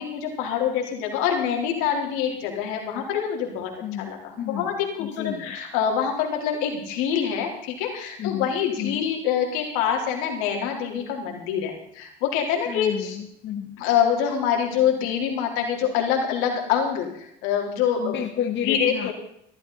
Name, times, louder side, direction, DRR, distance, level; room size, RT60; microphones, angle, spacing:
voice 1, 0.0-3.7 4.0-13.2 13.8-18.2 18.6-19.1, left 8 dB, 85° left, 1 dB, 4.2 m, -25 dB
voice 2, 4.4-5.6 8.2-8.5 8.8-9.0 12.7-13.8 18.0-19.1, left 9 dB, 60° left, 3 dB, 1.7 m, -31 dB
17.0 x 13.5 x 4.2 m, 0.73 s
supercardioid pair, 90°, 21 cm